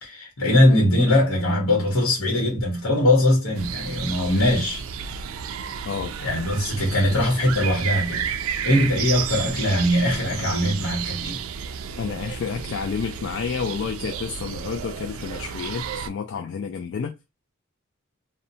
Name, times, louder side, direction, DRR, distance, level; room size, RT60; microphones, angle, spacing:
voice 1, 0.0-4.8 6.2-8.4 8.6-11.4, left 1 dB, 80° left, 1.0 m, -21 dB
sound 1, 3.6-16.1, right 7 dB, 70° right, 0.3 m, -32 dB
voice 2, 5.8-6.2 12.0-17.2, left 6 dB, 60° left, 0.3 m, -30 dB
2.7 x 2.1 x 2.6 m
head